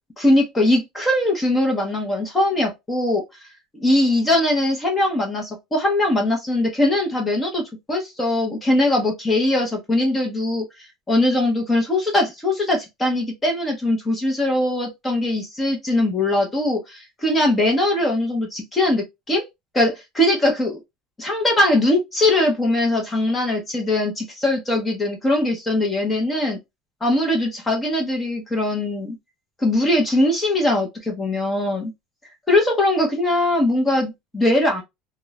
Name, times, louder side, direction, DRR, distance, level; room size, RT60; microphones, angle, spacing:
voice 1, 0.2-3.2 3.7-10.7 11.1-19.4 19.7-20.8 21.2-26.6 27.0-29.2 29.6-31.9 32.5-34.8, left 1 dB, 10° left, 0.6 m, -21 dB
2.9 x 2.0 x 2.2 m
cardioid pair, 170°, 0 cm